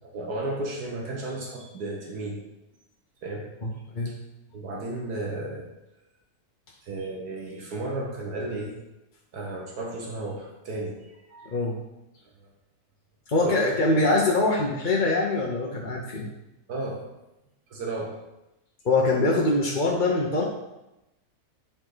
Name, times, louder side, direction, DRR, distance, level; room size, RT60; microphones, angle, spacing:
voice 1, 0.0-2.4 3.2-3.5 4.0-4.1 4.5-5.7 6.8-8.8 9.3-11.0 11.3-11.5 13.4-13.8 16.7-17.0 17.7-18.2, right 2 dB, 80° right, -1 dB, 1.8 m, -33 dB
voice 2, 3.6-4.1 11.4-11.7 13.3-16.3 18.8-20.4, left 2 dB, 35° left, -2 dB, 0.9 m, -23 dB
10.5 x 4.4 x 3.9 m, 0.94 s
omnidirectional pair, 1.7 m